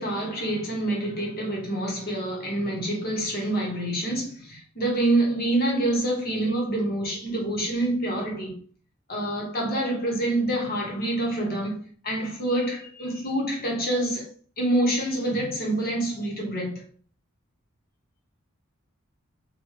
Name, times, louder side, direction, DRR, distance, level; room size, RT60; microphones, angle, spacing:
voice 1, 0.0-8.6 9.1-11.8 12.0-14.3 14.6-16.9, right 1 dB, 45° left, 1.0 m, -26 dB
3.5 x 2.3 x 3.1 m
head